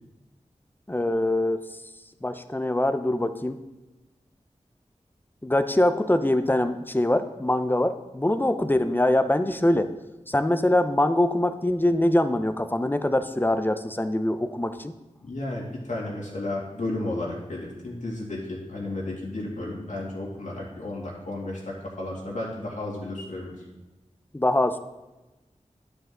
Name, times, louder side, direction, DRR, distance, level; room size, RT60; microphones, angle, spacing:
voice 1, 0.9-1.6 2.2-3.6 5.4-9.9 10.3-14.9 24.3-24.8, left 1 dB, 15° left, 9 dB, 0.6 m, -23 dB
voice 2, 15.2-23.6, left 2 dB, 85° left, -4 dB, 2.4 m, -33 dB
11.5 x 5.2 x 3.8 m, 1.1 s
wide cardioid pair, 60°, 12 cm